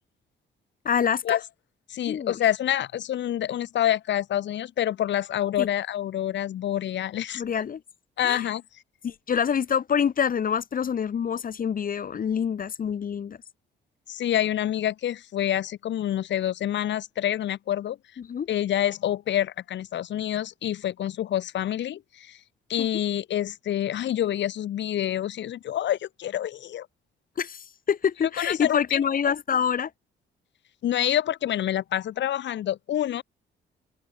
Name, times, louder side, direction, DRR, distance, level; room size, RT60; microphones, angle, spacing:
voice 1, 0.8-1.4 2.1-2.4 5.6-5.7 7.3-7.8 8.2-8.4 9.0-13.4 18.2-18.5 22.8-22.9 27.4-29.9, left 7 dB, 45° left, 1.2 m, -26 dB
voice 2, 1.9-7.4 8.2-8.6 14.1-18.0 18.5-22.4 22.7-26.9 28.4-29.0 30.8-33.2, left 11 dB, 65° left, 1.2 m, -27 dB
open air
cardioid pair, 90°, 20 cm